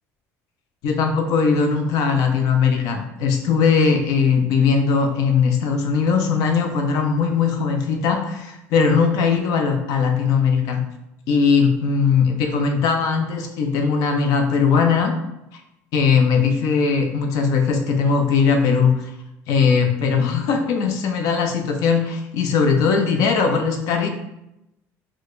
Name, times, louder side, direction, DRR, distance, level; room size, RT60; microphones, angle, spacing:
voice 1, 0.8-10.8 11.3-15.1 15.9-19.1 19.5-24.1, left 5 dB, 70° left, 4 dB, 0.6 m, -19 dB
4.5 x 2.2 x 2.5 m, 0.87 s
cardioid pair, 115°, 6 cm